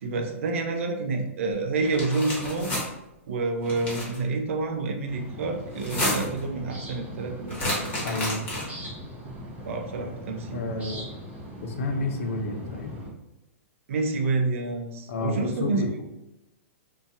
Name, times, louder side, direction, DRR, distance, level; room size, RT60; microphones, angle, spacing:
voice 1, 0.0-2.7 3.3-8.0 9.5-10.8 13.9-15.8, right 3 dB, 65° right, 4 dB, 0.5 m, -28 dB
sound 1, 1.8-2.9 3.6-4.2 5.7-6.4 7.5-8.9, left 1 dB, 20° left, 1.1 m, -30 dB
sound 2, 5.0-13.1, equal, 20° right, 0.8 m, -40 dB
voice 2, 8.0-8.5 10.5-11.2 11.6-13.0 15.1-16.0, left 2 dB, 65° left, 4 dB, 0.5 m, -30 dB
2.5 x 2.3 x 2.5 m, 0.91 s
hypercardioid pair, 120°, 8 cm